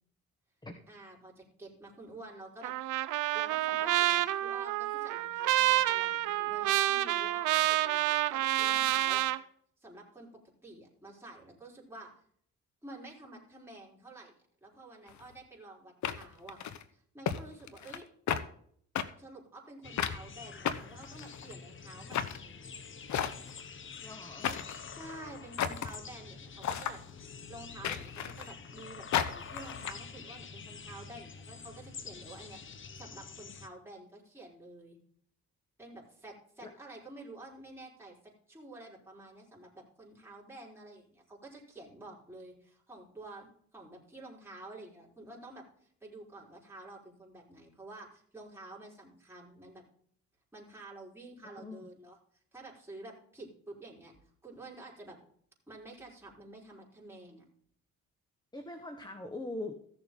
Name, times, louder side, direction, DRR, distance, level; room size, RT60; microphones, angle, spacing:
voice 1, 0.9-3.0 3.3-9.2 9.8-12.1 12.8-14.3 14.6-16.6 16.9-18.0 19.2-22.7 24.9-27.0 27.5-35.0 35.8-45.6 46.0-49.8 50.5-52.2 52.5-55.2 55.7-57.4, right 2 dB, 10° right, -4 dB, 4.4 m, -50 dB
Trumpet, 2.6-9.4, right 15 dB, 90° right, 0.7 m, -29 dB
sound 1, 15.1-15.2 16.0-16.8 17.3-17.4 17.7-18.0 18.3-18.4 19.0-19.1 20.0-20.2 20.7-21.5 22.1-22.4 23.1-23.6 24.4-24.8 25.6-26.0 26.6-27.0 27.8-28.5 29.1-29.9, left 9 dB, 65° left, 1.0 m, -33 dB
sound 2, 19.8-33.7, left 5 dB, 40° left, 1.1 m, -47 dB
voice 2, 24.0-24.6 36.6-36.7 51.6-51.9 58.5-59.7, left 2 dB, 15° left, 6 dB, 1.4 m, -42 dB
15.5 x 6.9 x 3.8 m, 0.62 s
cardioid pair, 90°, 30 cm